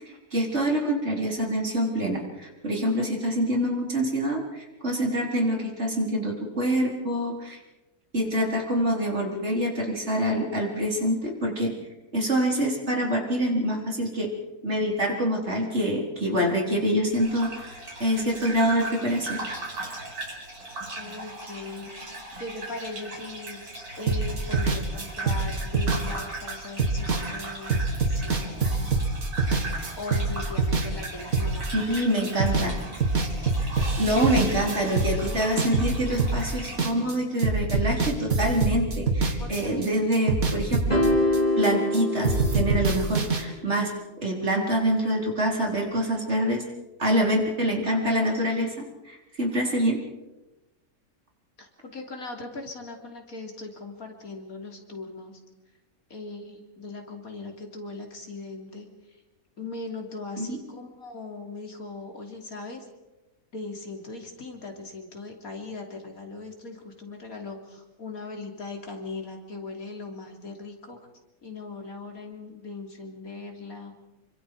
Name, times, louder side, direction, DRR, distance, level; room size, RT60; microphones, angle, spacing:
voice 1, 0.3-7.6 8.1-11.8 12.1-14.3 14.6-19.4 31.7-32.8 34.0-41.1 41.6-43.9 44.2-46.6 47.0-50.0 60.4-60.6, equal, 45° right, -1 dB, 4.6 m, -26 dB
Gurgling / Bathtub (filling or washing), 17.1-36.8, right 2 dB, 85° right, 5.3 m, -38 dB
voice 2, 21.0-23.6 24.0-29.1 30.0-31.7 33.9-34.3 39.4-40.1 51.6-55.4 56.1-58.9 59.6-62.9 63.5-71.0 71.4-74.0, left 3 dB, 70° left, 2 dB, 3.6 m, -39 dB
sound 1, 24.1-32.7 33.0-37.1 37.4-39.9 40.1-42.0 42.2-43.4, right 3 dB, 70° right, 2.7 m, -25 dB
sound 2, 40.9-43.3, left 1 dB, 25° left, 4.4 m, -25 dB
27.0 x 24.5 x 4.8 m, 1.1 s
omnidirectional pair, 1.6 m